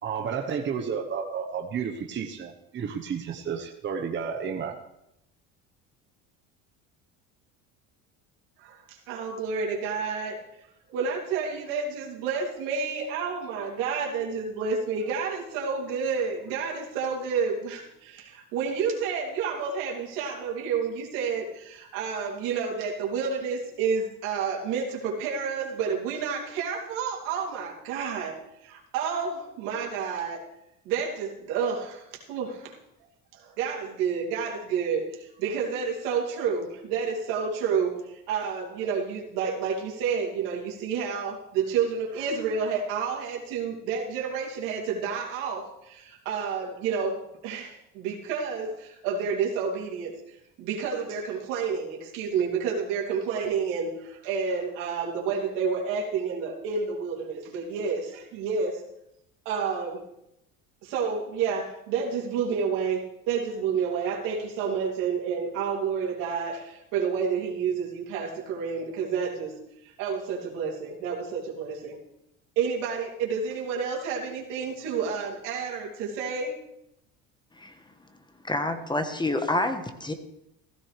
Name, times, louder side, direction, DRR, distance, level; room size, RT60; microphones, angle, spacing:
voice 1, 0.0-4.7, right 6 dB, 35° right, 3 dB, 1.1 m, -31 dB
voice 2, 8.6-10.4 10.9-30.4 30.8-32.8 33.3-47.2 47.4-58.8 59.4-60.0 60.8-69.6 69.8-72.0 72.6-76.5, right 6 dB, 80° right, -2 dB, 3.0 m, -30 dB
voice 3, 78.4-80.1, left 2 dB, 15° left, 8 dB, 1.2 m, -28 dB
15.5 x 13.5 x 3.4 m, 0.84 s
supercardioid pair, 95°, 32 cm